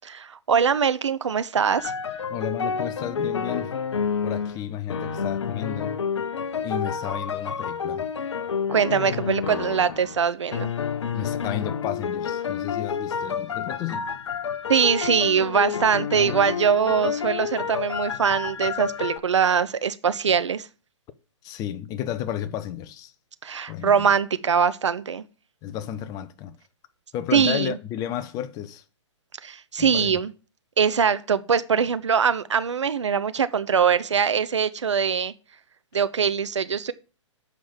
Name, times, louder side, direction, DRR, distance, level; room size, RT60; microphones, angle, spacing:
voice 1, 0.0-1.9 8.7-10.7 14.7-20.7 23.4-25.2 27.3-27.7 29.4-30.3 30.8-35.3 35.9-36.9, right 7 dB, 70° right, 0.7 m, -22 dB
sound 1, 1.7-4.6 4.9-10.2 10.5-19.2, left 7 dB, 65° left, 0.9 m, -29 dB
voice 2, 2.3-3.7 4.2-6.0 6.6-8.1 11.1-14.1 21.4-23.1 23.7-23.9 25.6-26.5 27.1-28.8 29.8-30.2, left 10 dB, 25° left, 0.7 m, -32 dB
7.4 x 5.3 x 7.1 m
figure-of-eight pair, 120°, 16 cm